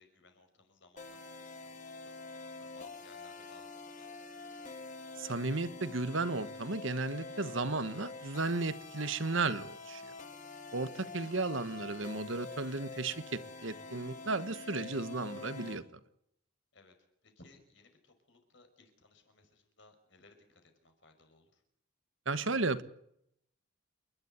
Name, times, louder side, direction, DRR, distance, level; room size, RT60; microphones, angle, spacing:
voice 1, 0.0-2.1 2.4-4.3 16.7-16.9 17.2-21.6, left 2 dB, 60° left, 5 dB, 5.9 m, -62 dB
sound 1, 1.0-15.8, left 3 dB, 35° left, 3.2 m, -46 dB
voice 2, 5.2-10.1 10.7-15.8 22.2-22.8, right 3 dB, 65° right, 13 dB, 1.4 m, -34 dB
29.0 x 12.0 x 9.6 m, 0.75 s
head